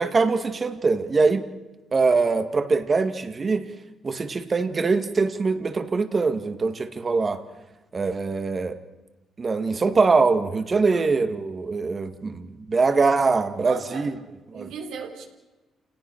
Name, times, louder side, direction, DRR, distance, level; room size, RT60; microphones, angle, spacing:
voice 1, 0.0-1.5 1.9-3.7 4.0-7.4 7.9-8.8 9.4-14.1 14.5-14.6, right 4 dB, 35° right, 9 dB, 2.1 m, -23 dB
voice 2, 13.6-14.2 14.5-15.3, right 6 dB, 85° right, 3 dB, 4.0 m, -38 dB
29.5 x 18.0 x 6.6 m, 1.1 s
cardioid pair, 90°, 0 cm